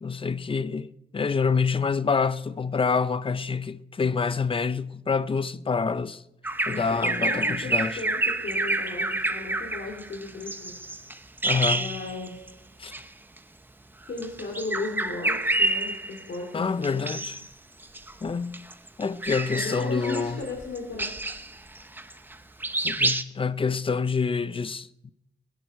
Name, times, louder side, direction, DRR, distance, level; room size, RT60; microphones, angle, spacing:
voice 1, 0.0-6.2 6.7-8.0 11.4-11.9 12.8-12.9 16.5-17.4 18.2-18.6 19.0-20.4 22.8-25.1, left 5 dB, 30° left, 0.5 m, -27 dB
Bird vocalization bird call bird song, 6.4-12.5 12.8-13.0 14.1-16.4 16.8-17.5 17.8-22.4 22.6-23.2, right 2 dB, 10° right, 0.6 m, -28 dB
voice 2, 6.7-10.7 11.7-12.4 14.1-17.1 19.5-21.1, left 3 dB, 65° left, 3.0 m, -36 dB
21.0 x 11.0 x 4.4 m
wide cardioid pair, 160°, 19 cm